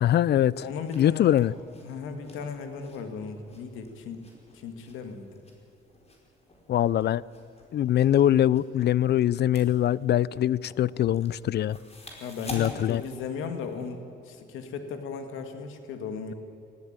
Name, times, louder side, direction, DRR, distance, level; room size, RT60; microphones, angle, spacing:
voice 1, 0.0-0.6 1.0-1.5 6.7-7.2 7.7-11.8 12.5-13.0, left 11 dB, 60° left, 22 dB, 0.5 m, -23 dB
voice 2, 0.6-1.5 1.8-5.3 12.2-16.3, left 5 dB, 90° left, 7 dB, 2.1 m, -37 dB
sound 1, 0.6-13.9, left 1 dB, 30° left, 4.8 m, -49 dB
19.5 x 15.0 x 9.0 m, 2.7 s
cardioid pair, 90°, 20 cm